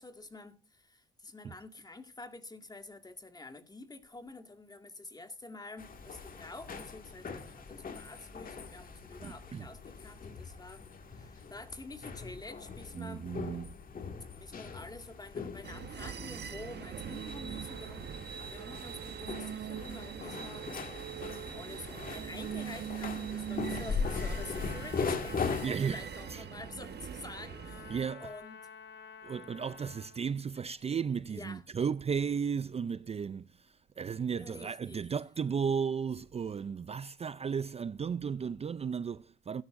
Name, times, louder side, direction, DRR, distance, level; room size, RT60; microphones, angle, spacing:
voice 1, 0.0-13.3 14.3-27.9 28.2-28.6 31.3-31.6 34.4-35.0, left 2 dB, 20° left, 2.1 m, -48 dB
sound 1, 5.8-25.7, left 5 dB, 45° left, 2.0 m, -40 dB
voice 2, 9.2-9.7 12.9-13.8 25.6-26.0 26.3-26.4 27.9-28.3 29.2-39.6, right 6 dB, 30° right, 0.5 m, -34 dB
sound 2, 15.6-28.0, right 8 dB, 55° right, 1.3 m, -42 dB
Trumpet, 24.0-30.2, left 6 dB, 65° left, 2.9 m, -51 dB
16.0 x 12.0 x 2.6 m
cardioid pair, 90°, 20 cm